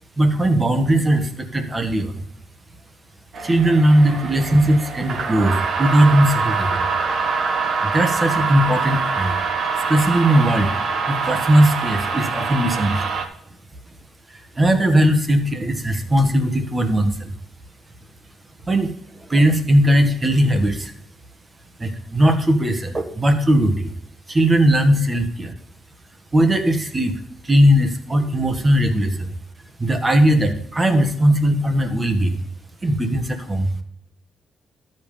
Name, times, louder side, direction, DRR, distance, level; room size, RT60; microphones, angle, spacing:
voice 1, 0.2-2.1 3.4-6.9 7.8-9.4 9.9-10.7 11.0-13.2 14.3-17.3 18.7-20.9 21.8-23.9 24.3-25.5 26.3-29.3 29.8-32.4 32.8-33.7, right 1 dB, 25° right, 7 dB, 1.6 m, -18 dB
sound 1, 3.3-13.3, right 5 dB, 60° right, 1.4 m, -24 dB
12.5 x 5.5 x 5.1 m, 0.72 s
cardioid pair, 90°, 0 cm